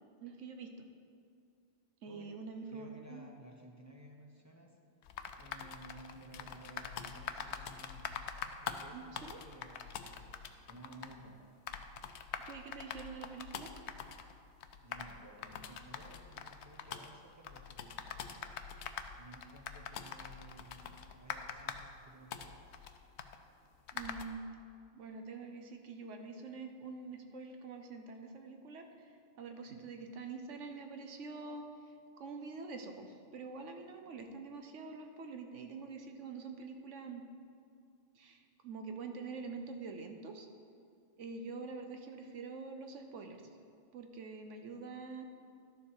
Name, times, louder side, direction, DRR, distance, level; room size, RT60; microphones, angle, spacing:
voice 1, 0.2-0.9 2.0-3.2 8.9-9.4 12.4-13.7 23.9-24.4 24.9-37.2 38.1-40.5 41.2-43.4 43.9-45.3, right 4 dB, 80° right, 5 dB, 1.1 m, -46 dB
voice 2, 2.7-4.8 5.4-8.2 8.6-11.5 14.8-18.3 19.1-22.8, right 1 dB, 15° right, 0 dB, 1.0 m, -55 dB
sound 1, 5.0-24.3, left 7 dB, 70° left, 0.9 m, -45 dB
12.0 x 7.1 x 4.7 m, 2.4 s
omnidirectional pair, 1.2 m